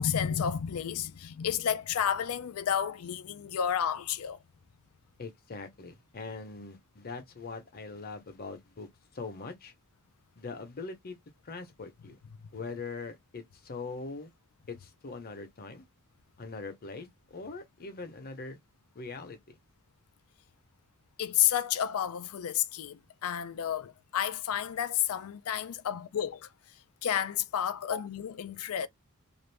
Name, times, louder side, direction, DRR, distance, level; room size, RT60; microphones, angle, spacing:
voice 1, 0.0-4.4 21.2-26.5 27.0-28.9, left 9 dB, 70° left, 0.4 m, -31 dB
voice 2, 5.2-9.7 10.4-11.2 11.4-12.2 12.5-14.3 14.7-15.8 16.4-18.6 18.9-19.6, left 4 dB, 45° left, 0.8 m, -42 dB
2.5 x 2.5 x 3.2 m
head